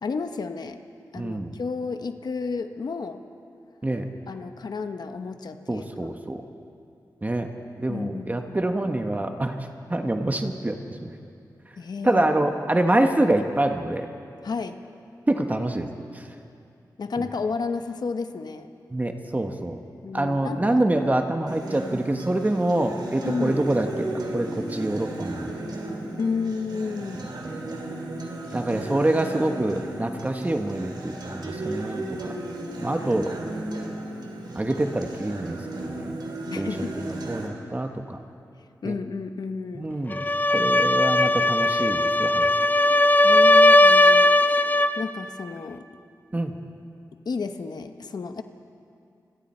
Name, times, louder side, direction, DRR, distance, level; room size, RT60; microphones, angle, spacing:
voice 1, 0.0-0.8 1.1-3.2 4.3-6.1 7.9-8.6 11.8-12.3 14.4-14.8 17.0-18.7 20.0-20.8 23.2-23.6 26.2-27.2 36.5-37.1 38.8-39.9 43.2-44.6 45.0-45.8 47.2-48.4, left 4 dB, 70° left, 7 dB, 1.0 m, -31 dB
voice 2, 1.2-1.5 3.8-4.0 5.7-6.4 7.2-7.5 7.8-9.5 9.9-10.8 11.0-11.1 12.0-14.1 15.3-15.9 16.1-16.2 18.9-19.8 20.1-25.5 28.5-32.3 32.8-33.3 34.5-36.1 36.6-36.7 37.3-38.2 38.8-38.9 39.7-40.2 40.5-42.5 46.3-46.5, right 1 dB, 25° right, 5 dB, 1.3 m, -25 dB
Acoustic guitar, 21.5-37.5, right 1 dB, 85° right, 3.1 m, -35 dB
sound 1, 40.1-45.0, left 1 dB, 25° left, 0.6 m, -18 dB
28.0 x 21.5 x 4.4 m, 2.5 s
wide cardioid pair, 85°, 7 cm